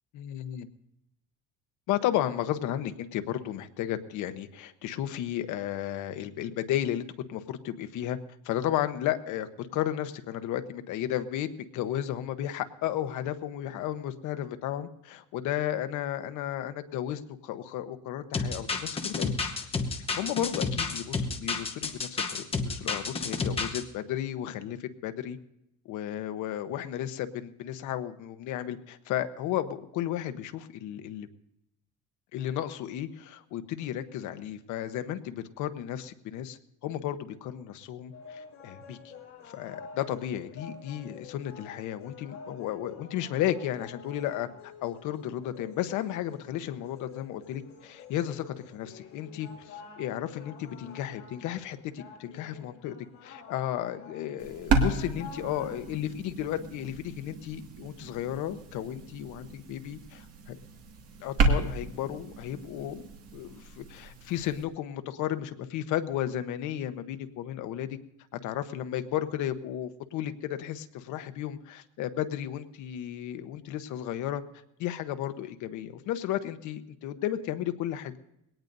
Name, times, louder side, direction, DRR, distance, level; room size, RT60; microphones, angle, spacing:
voice 1, 0.1-0.7 1.9-8.2 8.4-19.9 20.2-25.4 25.8-31.3 32.3-39.1 39.5-52.9 53.2-60.6 61.2-68.0 68.3-74.4 74.8-78.2, left 11 dB, 75° left, 9 dB, 1.0 m, -34 dB
sound 1, 18.3-23.8, left 4 dB, 20° left, 1.0 m, -30 dB
sound 2, 38.1-56.0, left 5 dB, 45° left, 7.4 m, -49 dB
sound 3, 54.4-64.6, right 3 dB, 50° right, 2.0 m, -32 dB
21.0 x 18.0 x 2.7 m, 0.82 s
cardioid pair, 170°, 30 cm